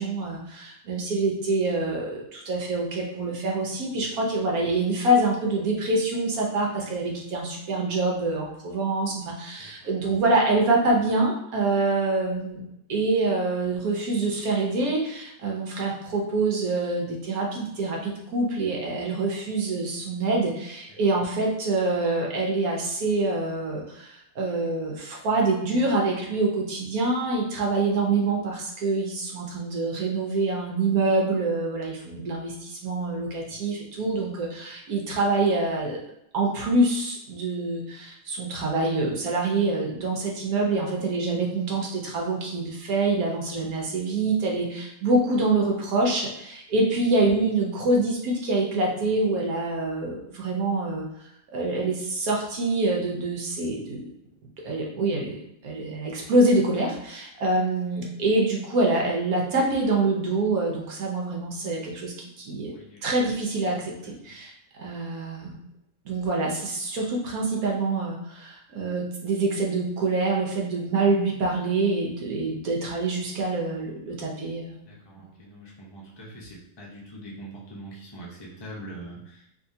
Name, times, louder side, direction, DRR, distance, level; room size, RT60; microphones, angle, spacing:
voice 1, 0.0-12.6 12.9-36.0 36.3-51.0 51.5-54.1 54.6-62.7 63.0-64.5 64.8-65.6 66.0-74.8, right 2 dB, 65° right, -1 dB, 1.1 m, -26 dB
voice 2, 74.9-79.3, right 1 dB, 30° left, -4 dB, 0.4 m, -42 dB
3.6 x 2.8 x 2.7 m, 0.79 s
omnidirectional pair, 1.7 m